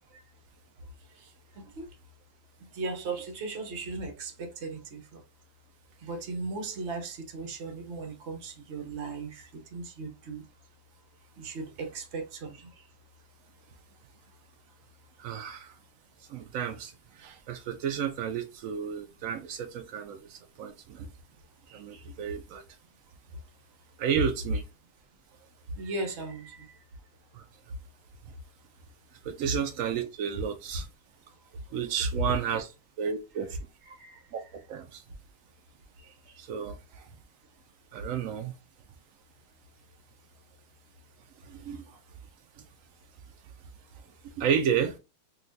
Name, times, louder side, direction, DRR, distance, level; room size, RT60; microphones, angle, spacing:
voice 1, 1.6-1.9 2.7-5.2 6.0-10.4 11.4-12.7 21.7-22.1 24.2-24.6 25.8-26.7 29.7-29.8 32.1-32.2 33.8-34.5 36.0-36.1, right 3 dB, 55° right, 0.8 m, -36 dB
voice 2, 15.2-15.7 16.3-21.1 21.7-22.6 24.0-24.6 27.3-27.4 29.2-30.9 31.7-32.7 33.0-33.5 34.3-34.4 34.7-35.0 36.4-37.1 37.9-38.5 41.4-42.0 44.2-45.0, right 8 dB, 90° right, 0.7 m, -32 dB
3.9 x 2.5 x 2.5 m
omnidirectional pair, 2.0 m